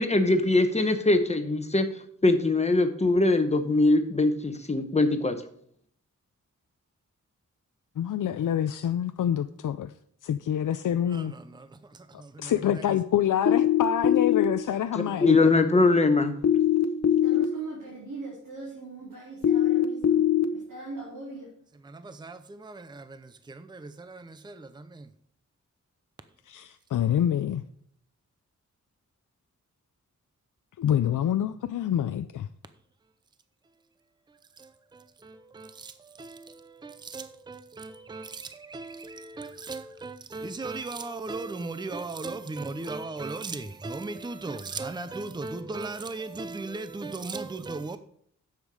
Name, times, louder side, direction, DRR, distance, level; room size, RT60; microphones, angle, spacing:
voice 1, 0.0-1.9 2.2-5.4 15.2-16.3, left 2 dB, 20° left, 1.1 m, -22 dB
voice 2, 8.0-9.9 10.2-11.3 12.1-15.4 26.5-27.6 30.8-32.5, left 10 dB, 90° left, 0.5 m, -27 dB
voice 3, 11.1-12.5 21.8-25.1 34.6-48.0, right 3 dB, 15° right, 0.6 m, -37 dB
sound 1, 13.5-14.4 16.4-17.4 19.4-20.4, left 11 dB, 55° left, 0.9 m, -21 dB
voice 4, 17.2-20.2 20.5-21.5, right 3 dB, 80° right, 4.2 m, -40 dB
10.5 x 7.4 x 4.8 m
wide cardioid pair, 130°, 31 cm